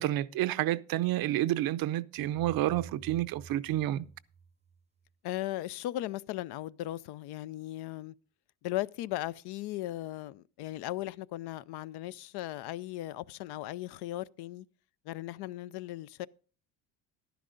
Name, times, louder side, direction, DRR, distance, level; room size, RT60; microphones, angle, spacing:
voice 1, 0.0-4.1, right 14 dB, 55° right, 0.6 m, -29 dB
sound 1, 2.2-5.1, right 6 dB, 15° right, 0.7 m, -50 dB
voice 2, 5.2-8.1 8.6-14.7 15.1-16.3, left 15 dB, 65° left, 0.5 m, -37 dB
11.5 x 10.5 x 3.8 m
supercardioid pair, 90°, 43 cm